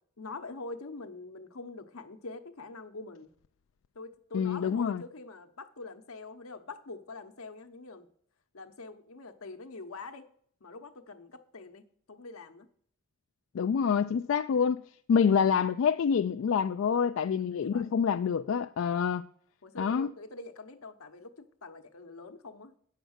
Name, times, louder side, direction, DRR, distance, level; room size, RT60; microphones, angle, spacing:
voice 1, 0.2-3.3 3.9-8.1 8.5-10.3 10.6-12.7 17.5-17.9 19.6-22.7, left 3 dB, 85° left, 1.0 m, -45 dB
voice 2, 4.3-5.0 13.5-14.8 15.1-19.2 19.8-20.1, left 6 dB, 65° left, 0.3 m, -27 dB
8.7 x 6.6 x 6.4 m
head